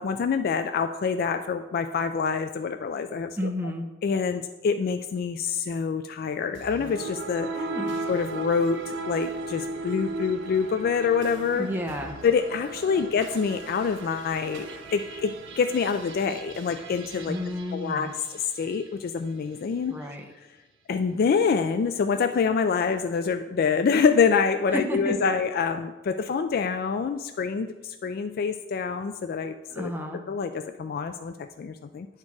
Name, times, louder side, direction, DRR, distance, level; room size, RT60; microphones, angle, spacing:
voice 1, 0.0-3.5 4.0-7.7 8.1-11.7 12.2-17.4 17.7-20.0 20.9-29.9 30.3-32.1, left 5 dB, 50° left, 8 dB, 0.3 m, -26 dB
voice 2, 3.4-3.9 7.6-8.0 11.5-12.2 17.3-18.1 19.9-20.3 24.7-25.1 29.7-30.2, left 1 dB, 10° right, 3 dB, 0.7 m, -31 dB
sound 1, 6.5-18.9, right 3 dB, 70° right, 0.8 m, -37 dB
9.6 x 4.4 x 4.7 m, 1.1 s
head